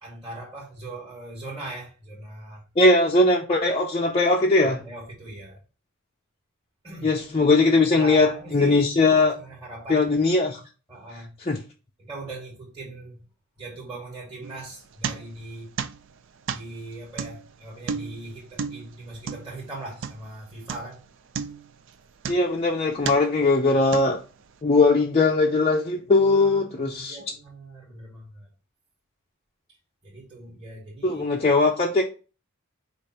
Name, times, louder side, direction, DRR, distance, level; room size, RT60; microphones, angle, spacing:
voice 1, 0.0-2.6 4.6-5.6 6.8-7.1 7.9-10.1 10.9-11.3 12.0-13.2 13.6-15.7 16.5-21.0 26.2-28.5 30.0-31.2, right 2 dB, 20° right, 1.3 m, -40 dB
voice 2, 2.8-4.8 7.0-9.3 9.9-10.6 11.5-11.6 22.3-24.2 24.6-27.2 31.0-32.0, left 3 dB, 25° left, 0.4 m, -20 dB
sound 1, 14.4-15.5 15.8-20.4 20.7-21.0 21.3-22.6 23.0-23.4 23.9-24.5, right 6 dB, 60° right, 0.4 m, -34 dB
5.0 x 2.5 x 4.1 m
head